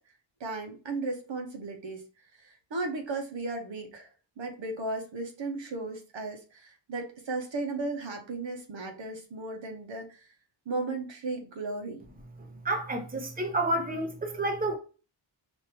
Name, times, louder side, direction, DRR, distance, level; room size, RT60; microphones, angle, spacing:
voice 1, 0.4-2.0 2.3-4.1 4.4-10.2 10.6-12.0, right 3 dB, 70° right, 1.2 m, -35 dB
voice 2, 12.4-14.8, right 1 dB, 20° right, 0.9 m, -30 dB
5.2 x 2.8 x 2.9 m
wide cardioid pair, 135°, 47 cm